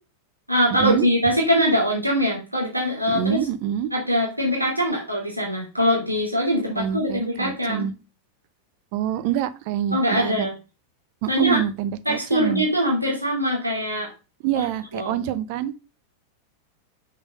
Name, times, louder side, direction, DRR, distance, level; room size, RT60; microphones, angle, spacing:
voice 1, 0.5-3.4 3.9-7.9 9.9-10.5 11.3-11.6 12.0-14.1 14.5-14.7 14.9-15.1, equal, 85° right, -2 dB, 2.7 m, -22 dB
voice 2, 3.1-3.9 6.8-7.9 8.9-10.5 11.2-12.6 14.4-15.7, right 10 dB, 45° right, 13 dB, 0.8 m, -26 dB
6.3 x 5.5 x 5.4 m, 0.31 s
figure-of-eight pair, 90°, 0 cm